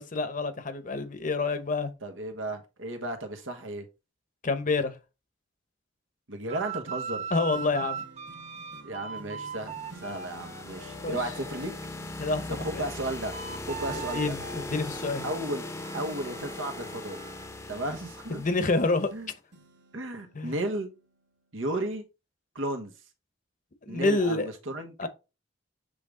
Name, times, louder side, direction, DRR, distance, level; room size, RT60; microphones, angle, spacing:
voice 1, 0.0-1.9 4.4-4.9 7.3-8.0 11.0-11.2 12.2-12.9 13.9-15.2 18.4-19.1 20.3-20.5 23.9-24.5 25.0-25.1, left 3 dB, 40° left, 0.9 m, -28 dB
voice 2, 2.0-3.9 6.3-7.2 8.8-11.7 12.5-13.3 13.7-14.4 15.2-15.7 15.9-17.2 17.7-18.4 19.1-19.3 19.9-20.9 21.5-22.0 22.5-22.9 23.9-24.9, right 1 dB, 80° right, 1.3 m, -34 dB
sound 1, 6.5-11.8 12.2-17.5, right 6 dB, 35° right, 0.6 m, -41 dB
sound 2, 7.5-19.1 19.5-21.4 21.9-22.0, right 1 dB, 60° right, 1.3 m, -52 dB
sound 3, 9.3-19.2, left 2 dB, 15° left, 0.7 m, -40 dB
7.6 x 3.4 x 3.7 m
head